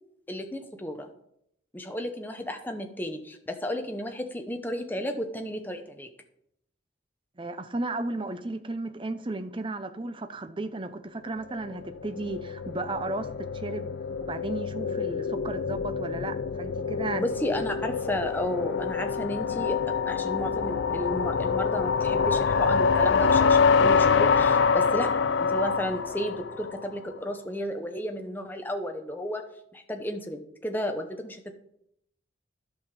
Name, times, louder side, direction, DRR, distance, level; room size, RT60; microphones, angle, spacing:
voice 1, 0.3-1.1 1.7-6.1 17.2-29.4 29.7-31.5, equal, 10° left, 5 dB, 0.8 m, -33 dB
voice 2, 7.4-13.9 14.2-17.2, right 2 dB, 25° right, 10 dB, 0.6 m, -34 dB
sound 1, 11.7-26.9, left 5 dB, 65° left, 0.4 m, -26 dB
11.5 x 5.7 x 4.8 m, 0.76 s
head